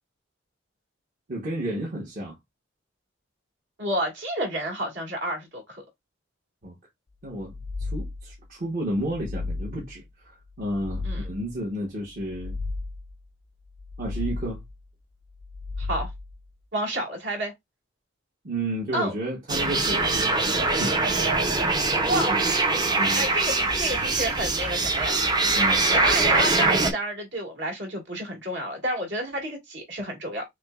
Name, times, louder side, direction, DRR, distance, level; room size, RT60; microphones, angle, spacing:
voice 1, 1.3-2.4 6.6-6.7 7.2-7.5 7.8-12.6 14.0-14.6 18.4-21.4 22.3-22.4 23.0-23.2 25.5-25.9, right 1 dB, 45° right, 1.0 m, -32 dB
voice 2, 3.8-5.8 11.0-11.2 15.8-16.1 16.7-17.5 18.9-19.1 22.1-22.3 23.1-25.2 25.9-30.4, right 1 dB, 60° right, 1.8 m, -30 dB
sound 1, 7.3-8.4 8.9-10.0 10.5-11.6 12.1-13.2 13.7-14.8 15.3-16.4, left 3 dB, 35° left, 0.4 m, -34 dB
sound 2, 19.5-26.9, right 3 dB, 20° right, 0.6 m, -23 dB
5.8 x 2.1 x 2.3 m
head